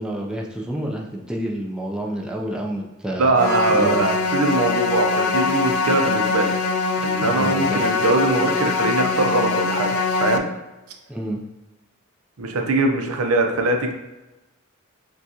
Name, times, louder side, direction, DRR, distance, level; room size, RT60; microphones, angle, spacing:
voice 1, 0.0-3.4 3.7-4.1 7.2-8.1 11.1-11.4, right 1 dB, 5° right, -1 dB, 0.4 m, -29 dB
voice 2, 3.2-6.5 7.0-10.5 12.4-13.9, right 3 dB, 85° right, 3 dB, 0.6 m, -22 dB
sound 1, 3.4-10.4, left 4 dB, 75° left, 0.4 m, -22 dB
6.3 x 2.3 x 2.8 m, 1.0 s
head